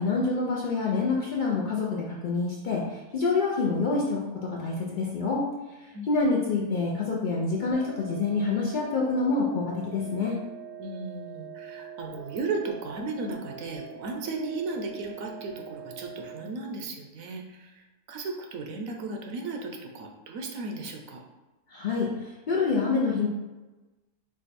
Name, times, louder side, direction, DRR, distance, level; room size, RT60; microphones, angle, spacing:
voice 1, 0.0-5.4 5.8-10.4 21.7-23.3, left 4 dB, 80° left, -3 dB, 0.4 m, -27 dB
sound 1, 7.7-16.5, right 7 dB, 40° right, 0.7 m, -44 dB
voice 2, 10.8-21.2, right 3 dB, 70° right, 2 dB, 1.0 m, -35 dB
5.0 x 2.2 x 4.1 m, 1.1 s
omnidirectional pair, 1.6 m